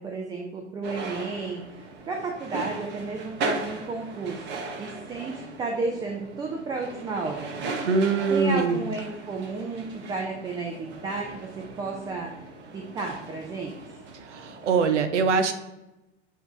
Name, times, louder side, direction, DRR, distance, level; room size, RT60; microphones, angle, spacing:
voice 1, 0.0-1.6 2.1-4.4 4.7-7.6 8.3-11.5 11.8-12.3 12.7-14.0, right 3 dB, 10° right, 1 dB, 0.4 m, -32 dB
sound 1, 0.8-15.0, right 3 dB, 30° right, 0.8 m, -38 dB
voice 2, 7.8-8.8 14.3-15.5, right 5 dB, 75° right, 8 dB, 0.7 m, -23 dB
7.7 x 2.8 x 2.4 m, 0.97 s
hypercardioid pair, 100°, 36 cm